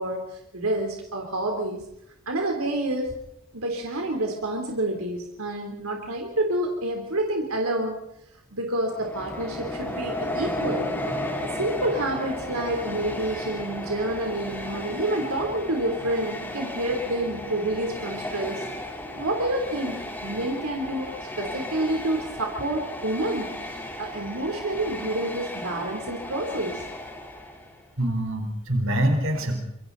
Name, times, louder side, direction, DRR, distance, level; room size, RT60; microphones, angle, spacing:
voice 1, 0.0-1.8 2.3-3.1 3.5-8.0 8.5-10.9 11.4-18.6 19.2-26.8, right 1 dB, 85° right, 1 dB, 3.6 m, -28 dB
Train, 8.9-27.8, left 1 dB, 10° left, 3.8 m, -34 dB
voice 2, 28.0-29.6, right 1 dB, 65° right, 3 dB, 4.4 m, -25 dB
26.5 x 23.5 x 4.1 m, 0.79 s
head